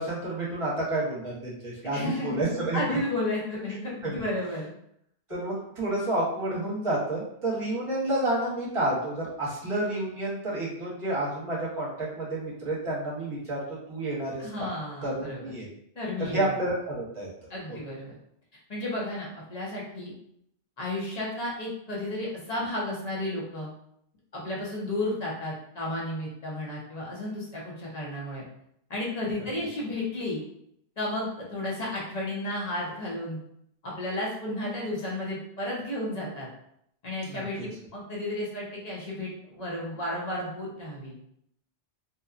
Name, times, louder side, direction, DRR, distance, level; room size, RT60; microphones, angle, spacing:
voice 1, 0.0-3.0 4.0-4.1 5.3-14.7 15.0-15.7 16.2-17.3 17.7-17.8 37.3-37.4, right 1 dB, 30° right, -6 dB, 0.9 m, -30 dB
voice 2, 1.9-4.7 14.4-15.4 16.0-16.5 17.5-18.1 18.7-20.1 20.8-23.7 24.3-28.4 28.9-30.4 31.0-33.4 33.8-36.5 37.0-41.1, left 1 dB, 40° left, -4 dB, 0.7 m, -33 dB
2.8 x 2.2 x 2.4 m, 0.74 s
omnidirectional pair, 1.2 m